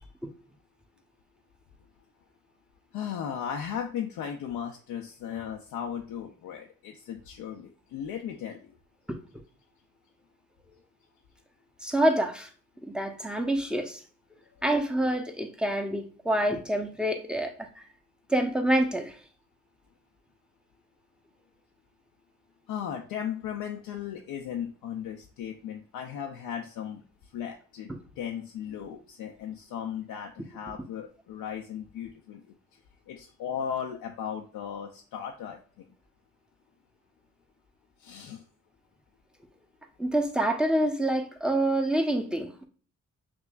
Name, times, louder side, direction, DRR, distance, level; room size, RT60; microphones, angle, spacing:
voice 1, 2.9-8.6 22.7-27.0 27.3-27.9 28.2-32.4 33.1-35.9 38.0-38.4, left 8 dB, 80° left, 0.6 m, -36 dB
voice 2, 11.8-12.5 12.8-14.0 14.6-17.7 18.3-19.2 40.0-42.7, right 1 dB, ahead, 0.9 m, -27 dB
5.9 x 2.9 x 2.4 m
supercardioid pair, 40°, 35 cm